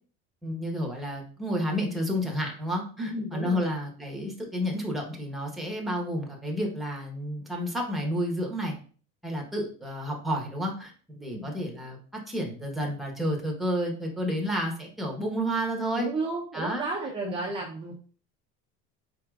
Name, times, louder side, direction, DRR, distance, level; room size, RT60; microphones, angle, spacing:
voice 1, 0.4-8.7 9.2-16.1 16.5-16.8 17.2-17.4, equal, ahead, 0 dB, 1.1 m, -31 dB
voice 2, 3.0-3.7 11.2-11.5 15.9-17.9, right 2 dB, 20° right, -2 dB, 0.7 m, -33 dB
4.7 x 4.3 x 2.4 m, 0.41 s
cardioid pair, 140°, 29 cm